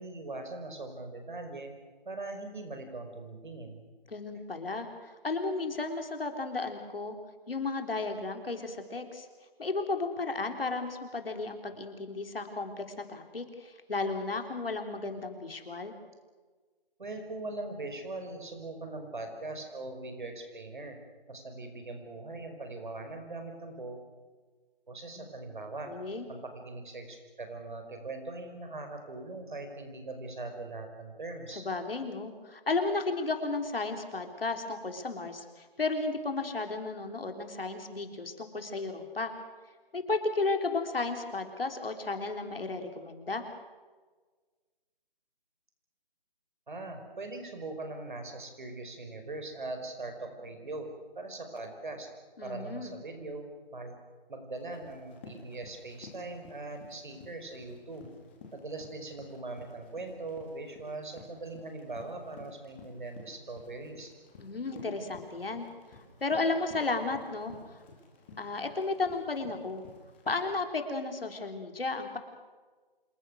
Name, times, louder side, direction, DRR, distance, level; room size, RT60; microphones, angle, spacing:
voice 1, 0.0-1.7 2.1-3.9 17.0-21.0 21.3-24.1 24.9-25.9 26.3-31.6 46.7-50.9 51.2-52.1 52.4-53.5 53.7-54.0 54.3-58.1 58.5-64.1, right 2 dB, 55° right, 5 dB, 5.3 m, -41 dB
voice 2, 4.1-7.2 7.5-9.3 9.6-15.9 25.2-25.3 25.9-26.3 31.5-39.3 39.9-43.5 52.4-52.9 64.4-65.7 66.2-67.8 68.4-69.8 70.3-72.2, left 3 dB, 70° left, 5 dB, 3.8 m, -33 dB
Run, 54.6-70.6, left 3 dB, 10° left, 2.4 m, -53 dB
27.0 x 21.0 x 6.4 m, 1.4 s
figure-of-eight pair, 175°, 30 cm